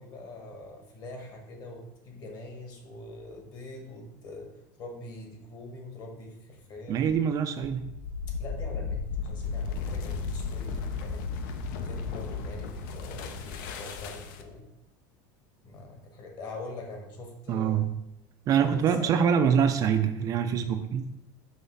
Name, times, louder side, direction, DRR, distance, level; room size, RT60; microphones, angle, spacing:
voice 1, 0.0-4.5 4.8-7.2 8.3-11.2 11.8-14.7 15.6-17.9 18.6-19.3, left 2 dB, 40° left, 2 dB, 1.5 m, -43 dB
Walk footsteps, 6.5-11.3 11.5-14.2, left 4 dB, 20° left, 0.6 m, -50 dB
voice 2, 6.9-7.9 17.5-18.0 18.5-21.1, right 7 dB, 35° right, 8 dB, 0.3 m, -25 dB
sound 1, 7.8-14.6, left 5 dB, 75° left, 0.7 m, -34 dB
5.7 x 3.1 x 5.5 m, 0.87 s
cardioid pair, 150°, 11 cm